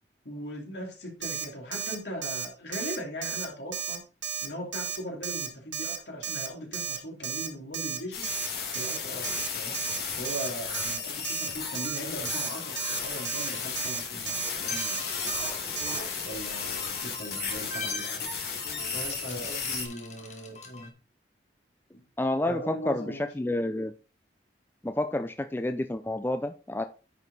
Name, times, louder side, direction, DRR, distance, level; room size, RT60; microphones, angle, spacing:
voice 1, 0.2-4.0 4.4-8.3 8.7-9.8 10.1-15.6 16.2-18.3 18.9-20.9 21.9-22.0 22.4-23.3, equal, 75° left, 0 dB, 3.0 m, -39 dB
Alarm, 1.2-1.5 1.7-2.0 2.2-2.5 2.7-3.0 3.2-3.5 3.7-4.0 4.2-4.5 4.7-5.0 5.2-5.5 5.7-6.0 6.2-6.5 6.7-7.0 7.2-7.5 7.7-8.0 8.2-8.5 8.7-9.0 9.2-9.5 9.7-10.0 10.2-10.5 10.7-11.0 11.2-11.5 11.7-12.0 12.3-12.5 12.8-13.0 13.3-13.5 13.8-14.0 14.3-14.5 14.8-15.0 15.3-15.5 15.8-16.0, right 7 dB, 85° right, 1.7 m, -33 dB
sound 1, 8.1-19.9, left 5 dB, 60° left, 2.0 m, -34 dB
sound 2, 12.5-20.9, left 3 dB, 40° left, 1.5 m, -42 dB
voice 2, 22.2-23.9 24.8-26.8, left 1 dB, 10° left, 8 dB, 0.4 m, -29 dB
9.7 x 4.7 x 4.0 m, 0.33 s
head